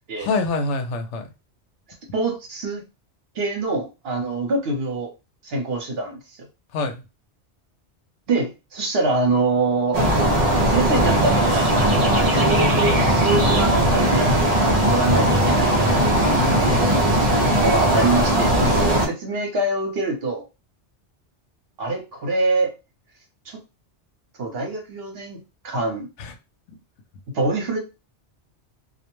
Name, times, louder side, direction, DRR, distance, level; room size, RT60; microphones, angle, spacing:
voice 1, 0.2-1.3 6.7-6.9 16.2-17.2 26.2-26.3 26.7-26.8, left 3 dB, 80° left, 7 dB, 0.9 m, -27 dB
voice 2, 2.1-2.8 3.4-5.1 5.4-6.2 8.3-10.0 10.7-11.6 12.2-14.5 14.9-16.0 17.6-20.5 21.8-22.7 23.5-23.6 24.4-25.4 25.6-26.1 27.3-27.8, right 2 dB, 65° right, 1 dB, 1.0 m, -24 dB
sound 1, 9.9-19.1, right 1 dB, 45° right, 0.5 m, -18 dB
2.4 x 2.1 x 3.0 m, 0.27 s
omnidirectional pair, 1.2 m